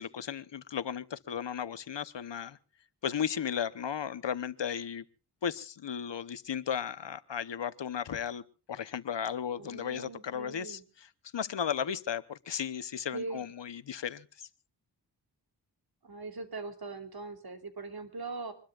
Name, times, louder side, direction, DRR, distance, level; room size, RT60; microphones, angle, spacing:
voice 1, 0.0-2.6 3.0-5.0 5.4-8.4 8.7-11.1 11.3-14.5, left 8 dB, 80° left, 15 dB, 1.0 m, -35 dB
voice 2, 9.6-10.8 13.1-13.4 16.0-18.5, right 3 dB, 60° right, 8 dB, 3.0 m, -41 dB
25.5 x 21.0 x 2.4 m, 0.36 s
wide cardioid pair, 95°, 42 cm